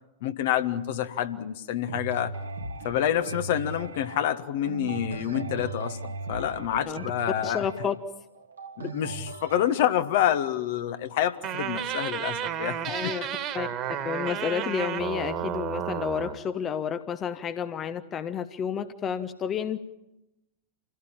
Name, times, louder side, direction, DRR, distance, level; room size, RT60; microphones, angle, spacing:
voice 1, 0.2-2.3 2.8-7.6 8.8-13.3, left 11 dB, 55° left, 10 dB, 1.4 m, -28 dB
sound 1, 1.9-9.8, right 3 dB, 75° right, 1.8 m, -38 dB
voice 2, 7.4-7.9 12.9-19.8, left 7 dB, 25° left, 11 dB, 1.0 m, -31 dB
sound 2, 11.4-16.4, right 9 dB, 35° right, 2.0 m, -32 dB
27.0 x 17.0 x 8.8 m, 0.92 s
figure-of-eight pair, 90°, 0 cm